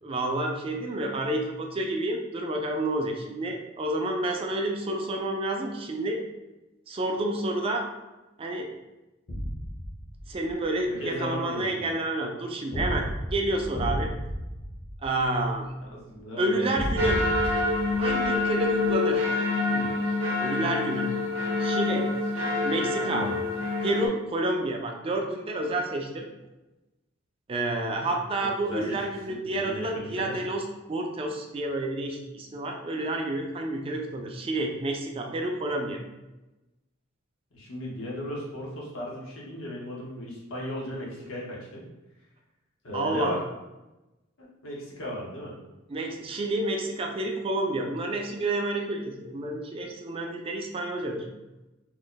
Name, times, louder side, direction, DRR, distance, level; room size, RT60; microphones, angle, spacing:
voice 1, 0.0-6.2 6.9-7.9 8.4-8.7 10.3-14.1 15.0-15.7 16.4-17.2 18.0-19.2 20.4-21.1 21.6-22.1 22.6-23.2 23.8-26.3 27.5-30.6 30.9-36.0 42.9-43.4 45.9-51.2, right 1 dB, 25° right, 2 dB, 0.3 m, -29 dB
sound 1, 9.3-10.7 12.7-15.7 16.7-18.9, equal, 55° left, 0.8 m, -33 dB
voice 2, 10.9-11.9 15.9-17.1 19.7-19.9 22.9-23.4 28.7-29.0 29.3-30.4 37.5-41.8 42.8-43.4 44.4-45.6, left 1 dB, 85° left, -4 dB, 1.0 m, -36 dB
sound 2, 17.0-24.1, left 3 dB, 70° right, 0.6 m, -26 dB
3.0 x 2.0 x 3.8 m, 1.0 s
head